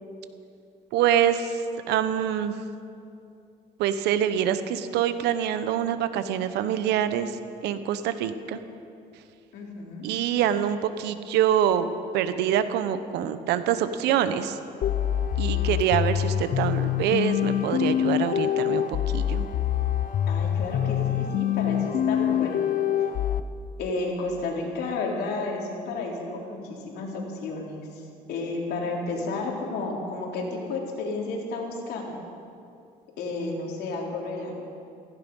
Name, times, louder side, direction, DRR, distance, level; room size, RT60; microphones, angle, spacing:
voice 1, 0.9-1.6 1.9-2.6 3.8-7.4 7.6-8.6 10.0-11.9 12.1-14.6 15.4-19.5, right 10 dB, 85° right, 11 dB, 1.0 m, -25 dB
voice 2, 9.5-10.1 15.4-15.7 20.3-22.6 23.8-28.0 28.3-32.2 33.2-34.6, left 3 dB, 75° left, -1 dB, 3.6 m, -32 dB
sound 1, 14.8-23.4, left 10 dB, 55° left, 0.7 m, -25 dB
17.0 x 15.5 x 5.5 m, 2.5 s
cardioid pair, 110°, 17 cm